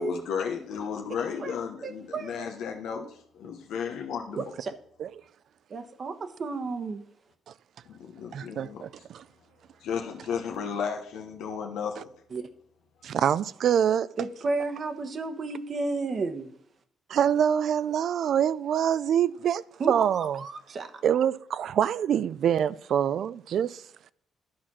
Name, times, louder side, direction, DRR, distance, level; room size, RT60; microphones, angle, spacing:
voice 1, 0.0-4.4 7.9-8.8 9.8-12.1, left 7 dB, 85° left, 0.9 m, -34 dB
voice 2, 1.8-2.5 4.3-4.7 5.7-7.0 12.3-12.4 14.2-16.5 19.8-20.9, right 3 dB, 50° right, 1.0 m, -32 dB
voice 3, 8.3-9.2 13.0-14.1 17.1-20.4 21.0-23.8, right 9 dB, 65° right, 0.3 m, -25 dB
11.0 x 4.2 x 6.1 m
cardioid pair, 90°, 0 cm